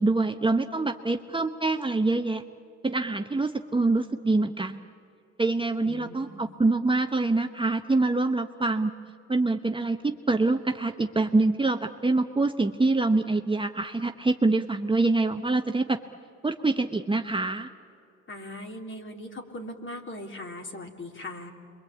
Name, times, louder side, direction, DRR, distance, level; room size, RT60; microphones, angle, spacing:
voice 1, 0.0-2.4 2.8-4.8 5.4-8.9 9.3-16.0 16.4-17.7, right 3 dB, 15° right, 5 dB, 1.0 m, -25 dB
voice 2, 5.8-6.6 18.3-21.5, left 1 dB, 40° left, 3 dB, 3.4 m, -40 dB
27.5 x 23.5 x 8.6 m, 2.5 s
cardioid pair, 90°, 30 cm